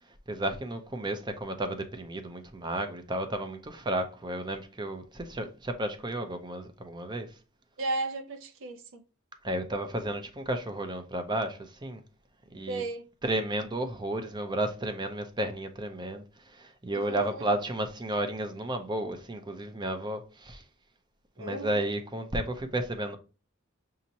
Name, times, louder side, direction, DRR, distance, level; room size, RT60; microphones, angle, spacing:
voice 1, 0.0-7.4 9.4-12.0 12.5-12.8 13.2-20.6 21.4-23.2, right 1 dB, 20° right, 0.6 m, -33 dB
voice 2, 7.8-9.0 12.7-13.1 16.9-17.5 21.4-21.8, right 2 dB, 65° right, 0.6 m, -35 dB
6.2 x 2.8 x 2.8 m
head